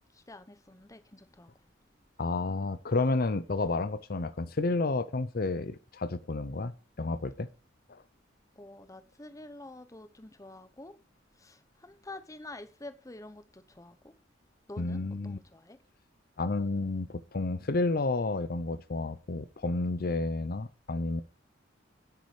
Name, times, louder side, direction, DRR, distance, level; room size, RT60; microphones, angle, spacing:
voice 1, 0.1-1.5 3.3-3.4 8.6-10.9 11.3-14.1 14.7-15.8, left 2 dB, 15° left, 0.9 m, -48 dB
voice 2, 2.2-6.7 7.0-7.5 14.8-15.4 16.4-21.2, left 3 dB, 50° left, 0.7 m, -31 dB
9.7 x 8.6 x 5.0 m
head